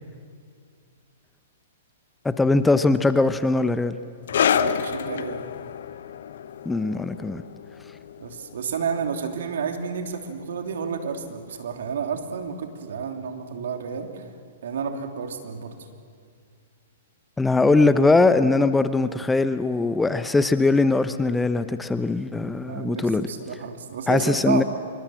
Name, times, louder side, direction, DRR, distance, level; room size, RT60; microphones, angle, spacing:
voice 1, 2.2-4.0 6.7-7.4 17.4-23.3 24.1-24.6, left 3 dB, 10° left, 12 dB, 0.9 m, -21 dB
sound 1, 4.3-11.3 11.5-11.8 12.5-12.6, left 8 dB, 65° left, 1.0 m, -29 dB
voice 2, 4.4-5.4 8.2-14.2 14.6-15.9 22.7-24.6, right 6 dB, 65° right, 5 dB, 3.1 m, -31 dB
26.0 x 24.5 x 7.7 m, 2.2 s
hypercardioid pair, 115°, 0 cm